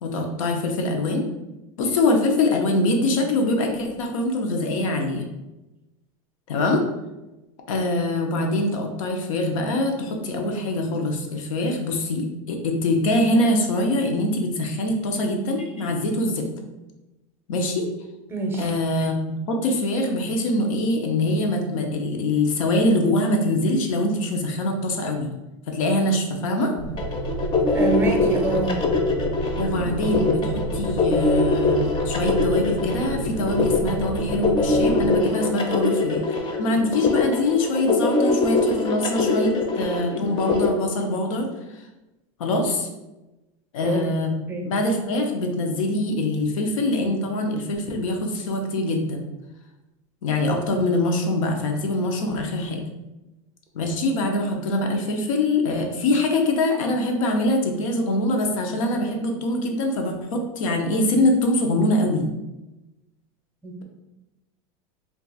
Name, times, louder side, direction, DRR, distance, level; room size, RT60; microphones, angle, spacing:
voice 1, 0.0-1.2 1.8-5.3 6.5-6.8 7.7-16.5 17.5-17.9 18.6-25.3 25.7-26.7 29.6-36.2 36.6-41.5 42.4-42.9 43.7-44.3 44.6-49.3 50.2-52.8 53.7-62.2, left 1 dB, 85° left, 3 dB, 0.6 m, -23 dB
voice 2, 18.3-18.7 27.7-28.8 43.8-44.0 44.5-44.7 63.6-63.8, right 3 dB, 15° right, 1 dB, 0.5 m, -26 dB
sound 1, 26.8-35.2, right 3 dB, 85° right, 0.4 m, -31 dB
sound 2, 27.0-40.7, left 3 dB, 30° left, 0.5 m, -23 dB
2.4 x 2.3 x 3.9 m, 1.0 s
supercardioid pair, 130°, 17 cm